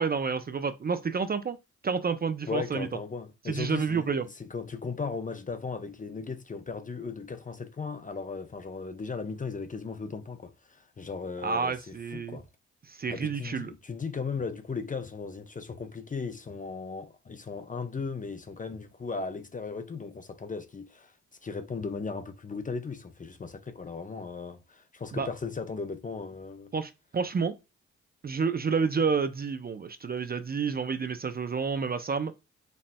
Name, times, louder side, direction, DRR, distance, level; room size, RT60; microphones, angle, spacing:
voice 1, 0.0-1.6 1.8-2.9 3.5-4.3 11.4-12.4 12.9-13.7 25.1-25.3 26.7-27.6 28.2-32.3, right 5 dB, 25° right, 0.5 m, -29 dB
voice 2, 2.4-12.5 13.1-21.1 21.4-26.7, left 4 dB, 25° left, 0.6 m, -37 dB
4.2 x 2.9 x 2.2 m
hypercardioid pair, 40°, 35 cm